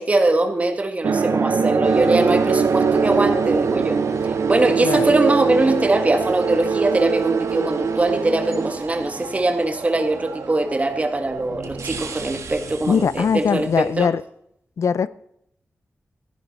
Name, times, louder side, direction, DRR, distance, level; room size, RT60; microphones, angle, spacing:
voice 1, 0.0-4.0 4.3-14.1, right 2 dB, 25° right, 1.5 m, -22 dB
sound 1, 1.0-8.7, right 5 dB, 70° right, 0.9 m, -21 dB
sound 2, 1.8-14.1, right 5 dB, 90° right, 1.4 m, -36 dB
voice 2, 4.8-5.1 12.9-14.2 14.8-15.1, left 6 dB, 80° left, 0.5 m, -21 dB
15.0 x 10.0 x 4.1 m
wide cardioid pair, 135°, 5 cm